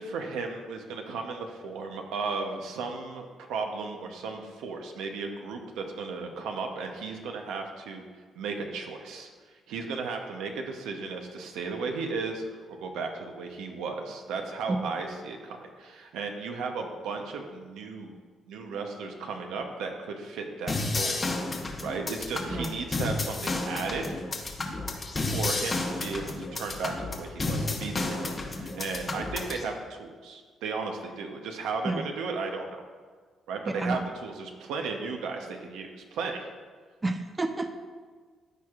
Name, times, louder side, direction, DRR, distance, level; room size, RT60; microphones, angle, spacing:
voice 1, 0.0-8.0 8.4-18.1 18.5-21.2 21.8-24.2 25.2-32.8 33.5-36.5, right 4 dB, 90° right, 3 dB, 0.8 m, -35 dB
sound 1, 20.7-29.6, left 3 dB, 35° left, 1.0 m, -32 dB
voice 2, 33.7-34.0 37.0-37.7, right 2 dB, 20° right, 7 dB, 0.5 m, -30 dB
13.0 x 4.6 x 2.5 m, 1.5 s
cardioid pair, 90°, 0 cm